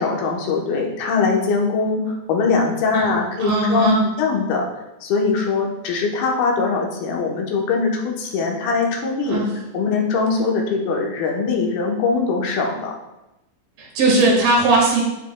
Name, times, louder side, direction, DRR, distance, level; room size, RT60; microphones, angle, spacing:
voice 1, 0.0-3.9 4.2-4.7 5.0-9.4 9.7-12.9, left 4 dB, 85° left, -1 dB, 2.9 m, -21 dB
voice 2, 3.4-4.0 9.3-9.5 13.8-15.0, right 2 dB, 85° right, -3 dB, 3.7 m, -18 dB
12.5 x 4.5 x 2.2 m, 0.96 s
omnidirectional pair, 4.2 m